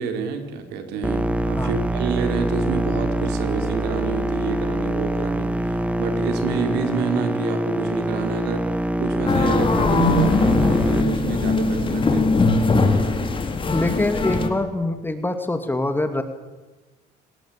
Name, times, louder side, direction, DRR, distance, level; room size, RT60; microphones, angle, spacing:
voice 1, 0.0-12.7, right 5 dB, 90° right, 6 dB, 4.5 m, -28 dB
sound 1, 1.0-11.0, right 1 dB, 5° right, 1.1 m, -25 dB
sound 2, 9.3-14.5, left 3 dB, 30° left, 3.7 m, -20 dB
voice 2, 13.7-16.2, left 2 dB, 10° left, 8 dB, 2.4 m, -24 dB
29.5 x 19.5 x 8.9 m, 1.2 s
cardioid pair, 110°, 17 cm